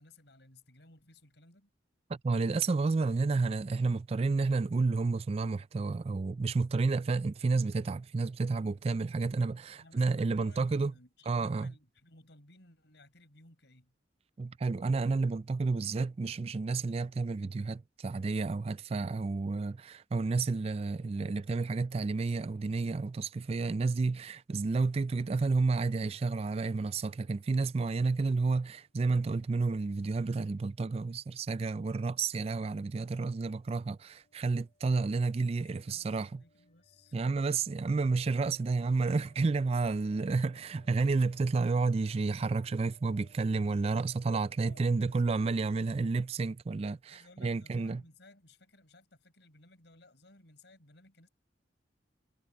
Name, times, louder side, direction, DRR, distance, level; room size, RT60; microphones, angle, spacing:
voice 1, 0.0-1.7 9.8-13.9 35.6-37.5 44.5-45.4 47.1-51.3, left 2 dB, 65° left, 5.4 m, -59 dB
voice 2, 2.1-10.9 11.3-11.7 14.4-36.4 37.1-48.0, right 3 dB, 35° right, 0.3 m, -30 dB
sound 1, 31.4-45.6, left 1 dB, 35° left, 6.1 m, -68 dB
head